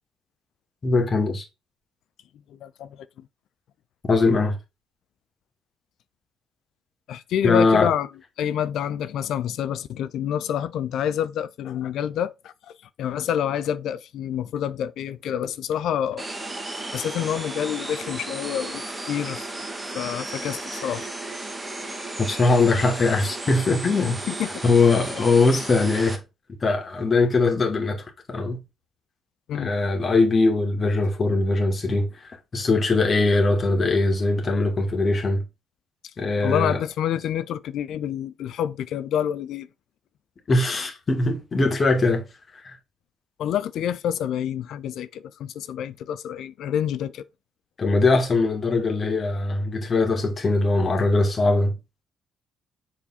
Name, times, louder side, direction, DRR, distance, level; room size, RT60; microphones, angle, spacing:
voice 1, 0.8-1.5 4.1-4.6 7.4-7.9 22.2-24.2 24.6-26.2 26.6-28.6 29.5-32.1 32.5-35.4 36.2-36.8 40.5-42.2 42.6-42.8 47.8-51.7, left 3 dB, 40° left, 2.3 m, -21 dB
voice 2, 2.5-3.3 7.1-8.1 8.4-12.5 13.0-16.3 16.9-19.5 19.9-21.1 24.3-24.5 29.5-29.7 36.4-39.7 43.4-47.3, left 9 dB, 65° left, 0.5 m, -27 dB
sound 1, 16.2-26.2, right 2 dB, 20° right, 1.7 m, -34 dB
7.5 x 4.0 x 4.2 m
figure-of-eight pair, 45°, 0 cm